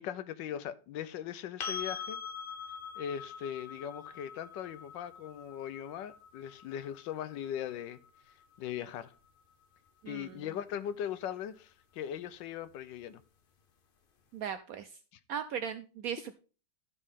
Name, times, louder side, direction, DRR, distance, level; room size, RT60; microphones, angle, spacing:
voice 1, 0.0-2.2 3.0-8.0 8.6-9.1 10.1-13.2, left 9 dB, 85° left, 1.3 m, -39 dB
sound 1, 1.6-9.4 12.2-12.3, left 6 dB, 55° left, 0.6 m, -44 dB
voice 2, 10.0-10.4 14.3-14.9 15.3-16.3, right 8 dB, 75° right, 0.8 m, -38 dB
12.5 x 5.4 x 3.6 m
omnidirectional pair, 2.0 m